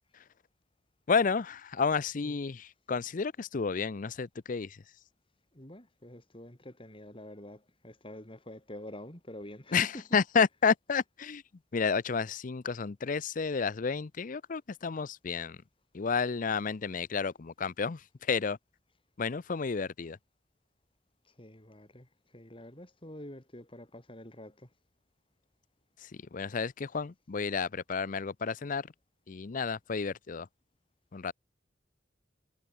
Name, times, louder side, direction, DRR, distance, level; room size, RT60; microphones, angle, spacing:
voice 1, 1.1-4.8 9.7-9.9 10.1-11.4 11.7-15.6 15.9-18.0 18.3-18.6 19.2-20.2 26.3-28.9 29.3-30.5 31.1-31.3, left 5 dB, 45° left, 0.5 m, -31 dB
voice 2, 2.2-2.5 5.5-10.2 21.2-24.7, left 1 dB, 30° left, 4.6 m, -47 dB
head